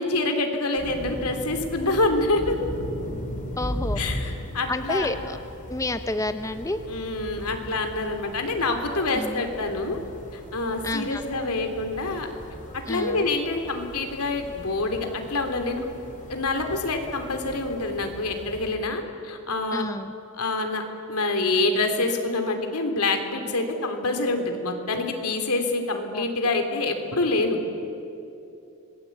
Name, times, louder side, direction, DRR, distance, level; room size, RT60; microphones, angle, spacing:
voice 1, 0.0-2.5 4.0-5.1 6.9-10.0 10.3-12.3 12.9-15.9 16.3-19.9 20.3-20.8 21.1-27.6, left 2 dB, 90° left, 5 dB, 3.3 m, -26 dB
sound 1, 0.8-18.8, equal, 40° left, 4.3 m, -38 dB
voice 2, 3.6-4.0 4.7-5.4 5.7-6.8 9.2-9.4 10.8-11.5 12.9-13.3 19.7-20.1 26.1-26.6, left 2 dB, 15° left, 9 dB, 0.8 m, -30 dB
26.0 x 20.5 x 8.6 m, 2.8 s
head